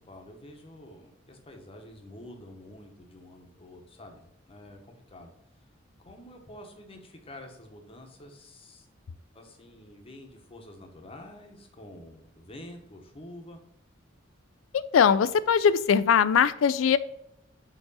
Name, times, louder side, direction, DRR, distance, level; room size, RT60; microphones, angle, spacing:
voice 1, 0.0-5.3 6.0-8.9 9.3-13.6, left 1 dB, 30° left, 3 dB, 1.1 m, -48 dB
voice 2, 14.7-17.0, left 7 dB, 85° left, 16 dB, 0.4 m, -21 dB
4.6 x 4.0 x 5.5 m, 0.79 s
head